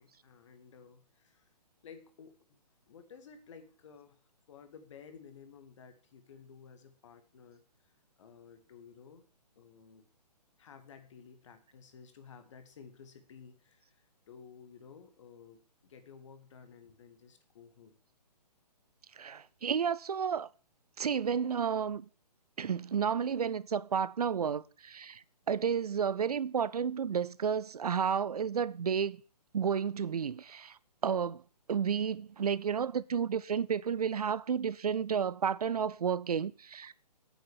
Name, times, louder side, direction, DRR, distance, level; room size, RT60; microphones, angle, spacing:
voice 1, 0.0-1.4 1.8-2.4 2.9-4.2 4.5-7.6 8.2-9.2 9.6-10.1 10.6-18.0, left 6 dB, 45° left, 2.0 m, -54 dB
voice 2, 19.2-20.5 21.0-22.0 22.6-29.2 29.5-31.4 31.7-36.9, right 7 dB, 65° right, 0.5 m, -31 dB
9.1 x 6.6 x 7.1 m
figure-of-eight pair, 130°, 21 cm